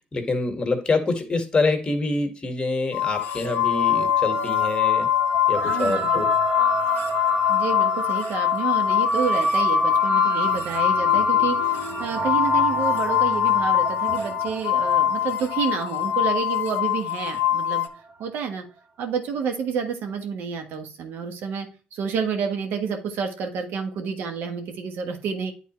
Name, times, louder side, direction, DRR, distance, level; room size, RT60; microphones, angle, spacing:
voice 1, 0.1-5.1 5.5-6.3, left 3 dB, 25° left, 6 dB, 1.8 m, -25 dB
sound 1, 2.9-17.9, left 12 dB, 75° left, 0.7 m, -23 dB
sound 2, 3.2-17.9, right 3 dB, 40° right, 1.3 m, -29 dB
voice 2, 5.6-6.2 7.5-11.7 12.0-17.9 18.2-18.6 19.0-25.5, right 6 dB, 70° right, 5 dB, 1.4 m, -29 dB
9.4 x 4.1 x 3.1 m, 0.36 s
supercardioid pair, 70°, 4 cm